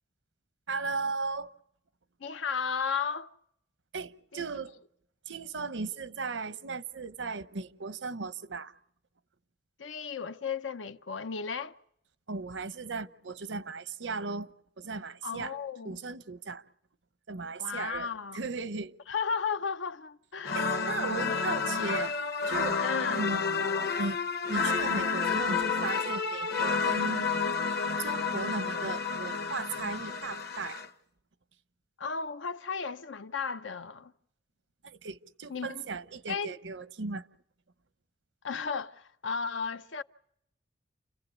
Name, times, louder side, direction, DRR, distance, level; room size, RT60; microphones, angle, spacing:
voice 1, 0.7-1.5 3.9-4.8 5.3-8.7 12.3-15.5 15.8-16.6 17.3-19.0 20.5-22.1 22.5-22.8 23.1-23.4 24.0-24.2 24.5-27.3 28.0-30.8 34.8-37.3, right 4 dB, 80° right, 0.8 m, -36 dB
voice 2, 2.2-3.3 4.3-4.4 9.8-11.7 15.2-16.0 17.6-18.4 19.1-21.2 22.8-23.2 32.0-34.1 35.5-35.9 36.3-36.6 38.4-40.0, left 6 dB, 90° left, 0.8 m, -34 dB
sound 1, 20.4-30.9, left 5 dB, 55° left, 1.1 m, -30 dB
29.5 x 15.5 x 8.2 m
head